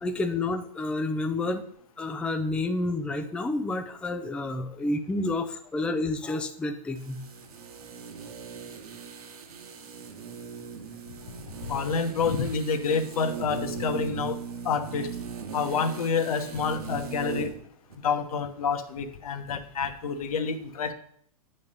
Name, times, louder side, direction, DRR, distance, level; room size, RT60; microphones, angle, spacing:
voice 1, 0.0-1.6 2.0-7.2, left 2 dB, 5° left, 6 dB, 0.4 m, -29 dB
sound 1, 7.0-17.6 17.9-18.0, right 7 dB, 80° right, 1.2 m, -39 dB
voice 2, 11.7-14.4 14.6-15.1 15.5-17.5 18.0-20.9, left 5 dB, 70° left, 9 dB, 1.0 m, -28 dB
9.4 x 3.3 x 5.5 m, 0.63 s
hypercardioid pair, 135°, 19 cm